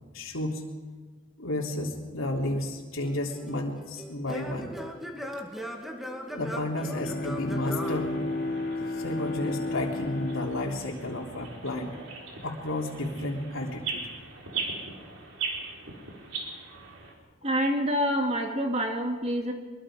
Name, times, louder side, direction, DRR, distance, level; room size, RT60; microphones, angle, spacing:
voice 1, 0.1-0.6 1.4-4.7 6.3-8.2 9.0-12.0 12.4-14.0, left 1 dB, 85° left, 0 dB, 3.4 m, -32 dB
Singing / Plucked string instrument, 3.0-8.9, equal, ahead, 1.9 m, -39 dB
Bowed string instrument, 6.7-12.2, left 3 dB, 45° left, 0.9 m, -34 dB
sound 1, 7.8-17.1, right 4 dB, 85° right, 4.2 m, -40 dB
voice 2, 17.4-19.5, equal, 30° right, 3 dB, 2.4 m, -27 dB
23.5 x 22.5 x 5.1 m, 1.4 s
head